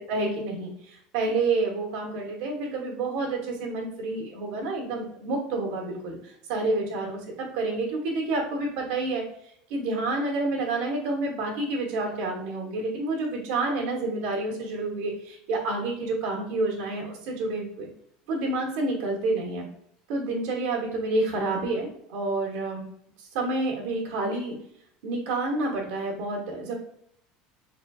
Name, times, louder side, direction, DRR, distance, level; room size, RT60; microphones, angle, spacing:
voice 1, 0.0-9.2 9.7-17.9 18.3-19.7 20.1-22.8 23.3-24.5 25.0-26.7, right 2 dB, 75° right, -2 dB, 1.3 m, -29 dB
4.3 x 4.0 x 2.3 m, 0.70 s
supercardioid pair, 110°, 3 cm